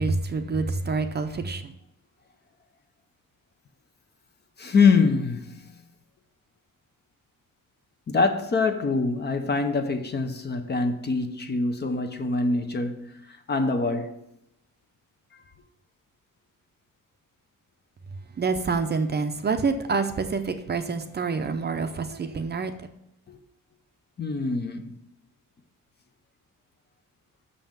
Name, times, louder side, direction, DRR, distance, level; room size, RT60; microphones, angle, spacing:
voice 1, 0.0-1.7 18.4-22.7, right 4 dB, 30° right, 0.6 m, -27 dB
voice 2, 4.6-5.7 8.1-14.2 23.3-23.4 24.2-25.0, left 4 dB, 30° left, 0.7 m, -24 dB
6.5 x 5.6 x 7.2 m
cardioid pair, 150°, 33 cm